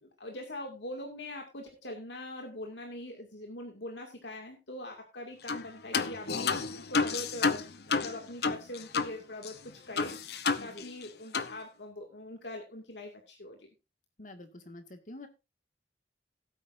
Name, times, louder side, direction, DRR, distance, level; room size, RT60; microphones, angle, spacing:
voice 1, 0.0-10.1 10.6-13.7, left 1 dB, 85° left, 2 dB, 2.3 m, -42 dB
sound 1, 5.5-5.7 5.9-9.1 9.4-9.5 10.0-11.1 11.3-11.5, left 4 dB, 65° left, 0.8 m, -30 dB
voice 2, 14.2-15.3, left 1 dB, 45° left, 7 dB, 1.9 m, -47 dB
16.5 x 9.1 x 2.6 m, 0.25 s
head